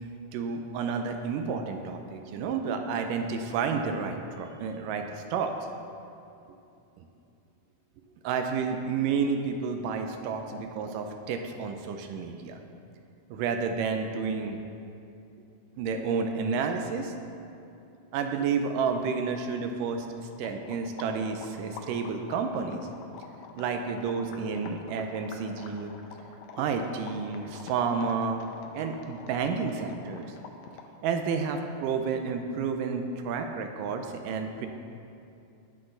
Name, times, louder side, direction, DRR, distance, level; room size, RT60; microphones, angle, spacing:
voice 1, 0.3-5.7 8.2-12.6 13.3-14.6 15.8-17.1 18.1-20.1 20.4-22.9 23.6-25.9 26.6-28.4 28.7-30.4 31.0-34.7, right 5 dB, 80° right, 5 dB, 2.1 m, -30 dB
sound 1, 19.3-31.0, left 5 dB, 75° left, 1.7 m, -47 dB
17.5 x 6.0 x 3.9 m, 2.7 s
omnidirectional pair, 4.1 m